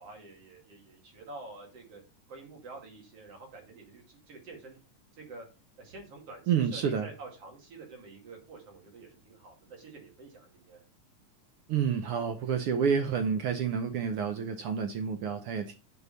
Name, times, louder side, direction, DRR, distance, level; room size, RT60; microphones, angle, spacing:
voice 1, 0.0-2.0 2.3-4.8 5.1-5.4 5.8-10.8, right 3 dB, 55° right, 3.2 m, -48 dB
voice 2, 6.5-7.1 11.7-15.7, right 7 dB, 75° right, 1.3 m, -29 dB
7.1 x 6.7 x 4.0 m
omnidirectional pair, 3.4 m